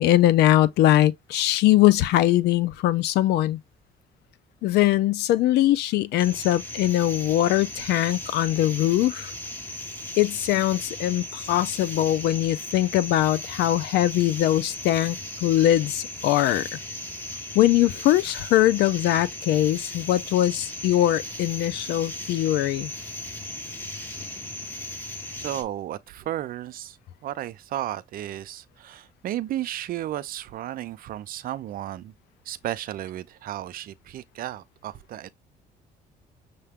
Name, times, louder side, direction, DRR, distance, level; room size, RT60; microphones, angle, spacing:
voice 1, 0.0-3.6 4.6-9.3 10.2-16.8 17.5-22.9, left 14 dB, 75° left, 0.5 m, -21 dB
sound 1, 6.2-25.6, left 1 dB, 10° left, 1.1 m, -37 dB
voice 2, 25.4-32.1 32.5-35.3, right 13 dB, 60° right, 0.5 m, -33 dB
6.6 x 2.2 x 3.5 m
cardioid pair, 110°, 17 cm